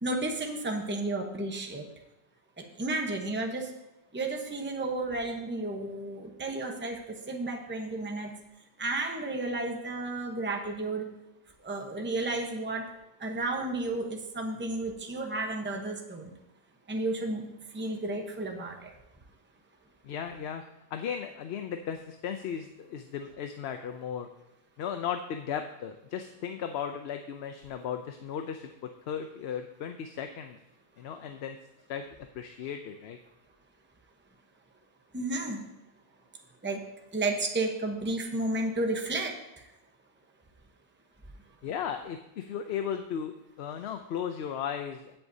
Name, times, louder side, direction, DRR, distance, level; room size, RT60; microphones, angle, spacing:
voice 1, 0.0-1.8 2.8-3.7 4.1-8.3 8.8-11.1 11.6-12.8 13.2-16.3 16.9-17.5 17.7-18.9 35.1-35.6 36.6-36.8 37.1-39.7, right 2 dB, 10° right, 2 dB, 0.9 m, -32 dB
voice 2, 20.0-20.6 20.9-24.3 24.8-30.6 31.0-31.6 31.9-32.1 32.3-33.2 41.6-45.2, left 8 dB, 70° left, 7 dB, 0.8 m, -36 dB
16.0 x 7.9 x 2.7 m, 0.89 s
omnidirectional pair, 1.2 m